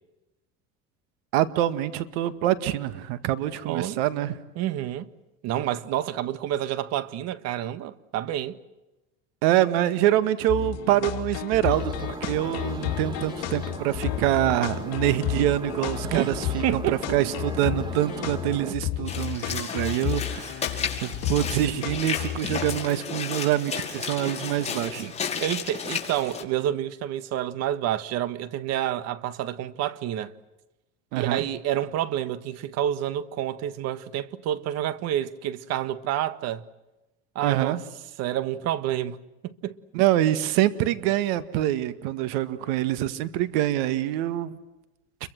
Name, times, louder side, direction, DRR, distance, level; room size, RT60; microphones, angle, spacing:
voice 1, 1.3-4.4 9.4-25.1 31.1-31.4 37.4-37.8 39.9-44.6, right 13 dB, 80° right, 2.0 m, -25 dB
voice 2, 3.6-4.0 4.6-5.1 5.4-8.6 16.1-17.2 25.4-30.3 31.1-36.7 37.3-37.8 38.2-39.8, right 12 dB, 60° right, 1.7 m, -29 dB
sound 1, 10.5-23.0, left 13 dB, 60° left, 3.3 m, -32 dB
sound 2, 11.7-18.7, right 2 dB, 15° right, 2.1 m, -39 dB
Walk footsteps / Splash splatter, 19.1-26.4, left 6 dB, 20° left, 5.4 m, -33 dB
30.0 x 23.5 x 7.8 m
supercardioid pair, 125°, 29 cm